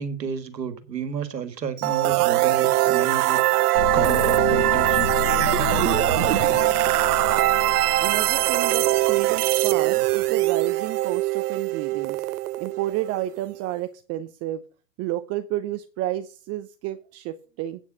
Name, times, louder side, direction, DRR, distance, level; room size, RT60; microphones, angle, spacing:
voice 1, 0.0-3.4 3.9-6.1, right 7 dB, 90° right, 1.8 m, -32 dB
sound 1, 1.8-13.6, right 17 dB, 65° right, 0.6 m, -22 dB
sound 2, 3.7-9.7, left 10 dB, 60° left, 0.8 m, -32 dB
voice 2, 8.0-12.2 12.6-14.6 15.0-17.8, right 14 dB, 30° right, 0.7 m, -31 dB
9.0 x 7.2 x 5.4 m
hypercardioid pair, 105°, 48 cm